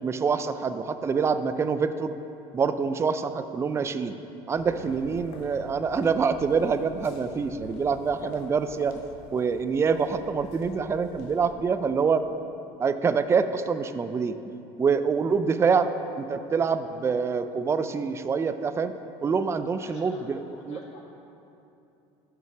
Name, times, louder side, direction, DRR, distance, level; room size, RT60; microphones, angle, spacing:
voice 1, 0.0-2.1 2.5-4.1 4.5-9.0 9.3-12.2 12.8-14.4 14.8-15.9 16.2-18.9 19.2-20.8, right 5 dB, 20° right, 11 dB, 0.4 m, -26 dB
sound 1, 4.5-11.5, left 4 dB, 80° left, 0.8 m, -45 dB
voice 2, 19.5-21.0, left 3 dB, 55° left, -1 dB, 1.3 m, -49 dB
7.3 x 5.8 x 5.8 m, 2.8 s
supercardioid pair, 100°, 13 cm